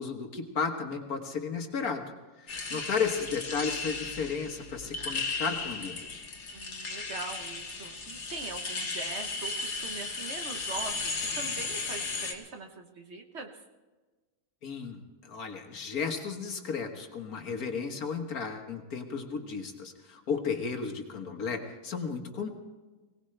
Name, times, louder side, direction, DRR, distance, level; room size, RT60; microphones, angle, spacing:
voice 1, 0.0-2.0 2.4-6.2 14.6-22.5, left 5 dB, 75° left, 4 dB, 1.9 m, -34 dB
sound 1, 2.5-12.3, left 3 dB, 50° left, 1.6 m, -35 dB
voice 2, 6.5-13.6, right 3 dB, 50° right, 4 dB, 1.3 m, -42 dB
22.0 x 18.0 x 3.3 m, 1.3 s
omnidirectional pair, 1.6 m